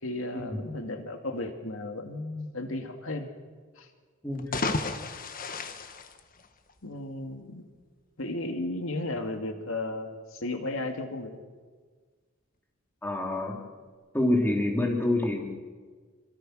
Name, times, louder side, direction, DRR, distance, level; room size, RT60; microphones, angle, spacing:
voice 1, 0.0-3.3 3.8-3.9 6.8-7.7 8.2-11.4, left 2 dB, 85° left, 5 dB, 2.3 m, -34 dB
sound 1, 4.3-6.9, left 3 dB, 45° left, 1.6 m, -33 dB
voice 2, 13.0-13.5 14.1-15.4, left 1 dB, 10° left, 1 dB, 3.5 m, -26 dB
27.5 x 25.5 x 6.3 m, 1.5 s
head